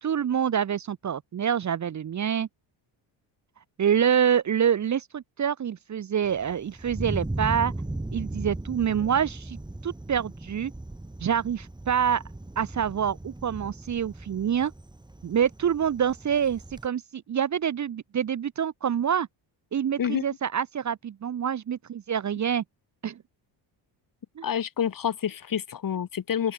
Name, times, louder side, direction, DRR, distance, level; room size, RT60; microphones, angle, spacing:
voice 1, 0.0-2.5 3.8-7.7 8.1-9.6 9.8-10.7 11.2-12.2 12.6-14.7 15.2-19.3 19.7-22.6 23.0-23.2 24.4-24.5, right 8 dB, 35° right, 1.0 m, -26 dB
Thunder, 6.2-16.9, right 2 dB, 10° right, 3.7 m, -37 dB
voice 2, 24.4-26.5, left 8 dB, 45° left, 2.7 m, -28 dB
open air
cardioid pair, 125°, 47 cm